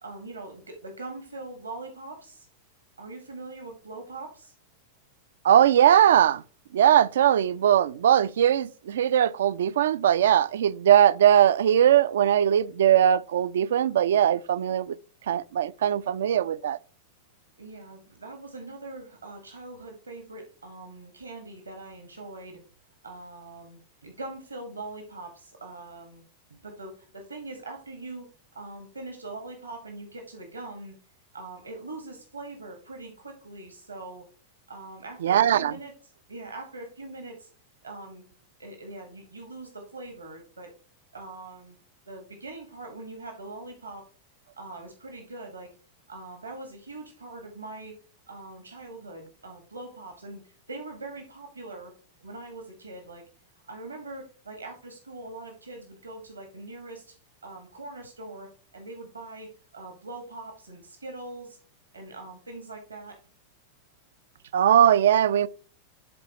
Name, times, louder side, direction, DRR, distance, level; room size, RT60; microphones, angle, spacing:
voice 1, 0.0-2.5 3.0-4.5 17.6-22.6 23.0-26.2 26.5-28.3 28.5-30.9 31.3-34.3 34.7-35.9 36.3-37.5 37.8-38.2 38.6-40.7 41.1-41.8 42.0-44.0 44.6-45.7 46.1-48.0 48.3-51.9 52.2-53.2 53.7-57.1 57.4-61.6 61.9-63.2, right 2 dB, 80° right, 1.4 m, -42 dB
voice 2, 5.4-6.4 6.7-15.0 15.3-16.8 35.2-35.7 64.5-65.5, right 10 dB, 60° right, 0.4 m, -20 dB
11.0 x 4.0 x 2.9 m
figure-of-eight pair, 90°, 0 cm